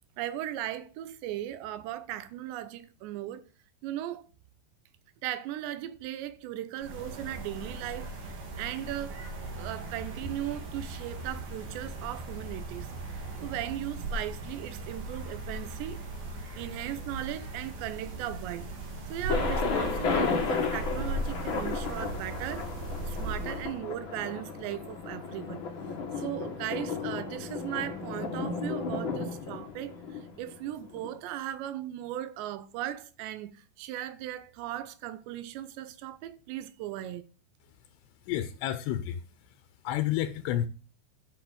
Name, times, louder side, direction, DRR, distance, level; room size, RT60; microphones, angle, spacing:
voice 1, 0.2-3.4 3.8-4.3 5.2-9.3 9.6-16.0 16.6-18.7 19.1-22.7 23.0-37.2, right 13 dB, 85° right, 3.1 m, -37 dB
sound 1, 6.8-23.8, right 1 dB, 60° right, 4.2 m, -38 dB
Thunder, 19.3-31.1, left 4 dB, 50° left, 1.4 m, -33 dB
voice 2, 38.3-39.2 39.8-40.7, left 12 dB, 80° left, 2.9 m, -30 dB
10.5 x 6.2 x 7.8 m
omnidirectional pair, 5.0 m